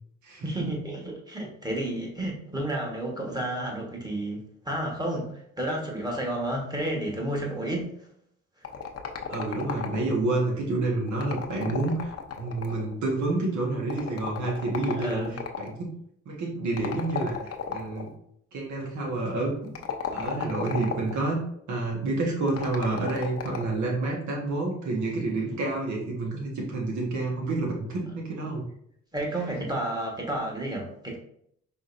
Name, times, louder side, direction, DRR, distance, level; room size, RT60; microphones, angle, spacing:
voice 1, 0.4-7.9 15.0-15.4 29.1-31.2, right 1 dB, 15° right, -1 dB, 1.3 m, -31 dB
sound 1, 8.6-10.3 11.1-12.9 13.9-15.7 16.8-18.1 19.6-21.2 22.5-23.8, left 7 dB, 50° left, 0.7 m, -35 dB
voice 2, 9.3-15.2 15.6-15.9 16.2-17.4 17.7-18.1 18.5-19.7 20.1-21.4 21.7-28.6 29.6-29.7, right 2 dB, 70° right, -1 dB, 1.5 m, -29 dB
5.1 x 3.5 x 2.6 m, 0.70 s
cardioid pair, 90°, 30 cm